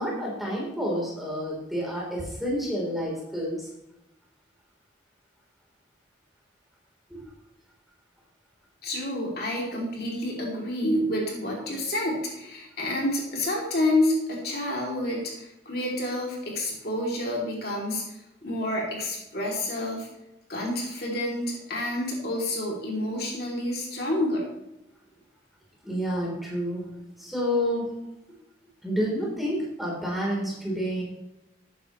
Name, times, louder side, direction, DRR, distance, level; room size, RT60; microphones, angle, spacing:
voice 1, 0.0-3.7 7.1-7.2 25.8-26.9 27.2-27.9 28.8-31.0, equal, ahead, -4 dB, 3.5 m, -29 dB
voice 2, 8.8-18.2 18.4-20.1 20.5-24.5, left 1 dB, 55° left, -2 dB, 2.8 m, -29 dB
13.5 x 9.3 x 3.1 m, 0.92 s
head